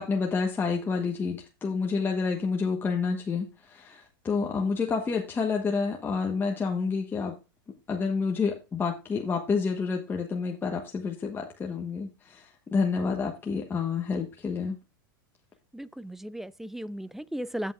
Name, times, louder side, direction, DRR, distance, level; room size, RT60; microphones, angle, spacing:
voice 1, 0.0-7.4 7.9-14.8, left 5 dB, 15° left, 1.2 m, -29 dB
voice 2, 15.7-17.7, equal, 5° right, 0.3 m, -36 dB
16.0 x 5.4 x 2.5 m
hypercardioid pair, 110°, 12 cm